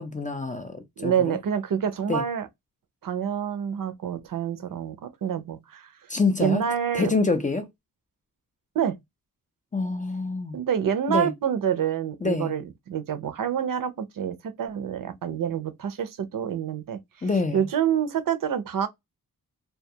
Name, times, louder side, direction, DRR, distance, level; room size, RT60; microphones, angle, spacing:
voice 1, 0.0-1.4 2.1-2.2 6.1-6.6 6.9-7.7 9.7-10.6 11.1-11.3 12.2-12.5 17.2-17.6, left 3 dB, 25° left, 0.4 m, -26 dB
voice 2, 1.0-2.5 3.0-5.9 6.4-7.1 8.8-8.9 10.5-17.0 17.5-18.9, right 8 dB, 65° right, 0.5 m, -27 dB
2.3 x 2.2 x 2.7 m
wide cardioid pair, 120°, 36 cm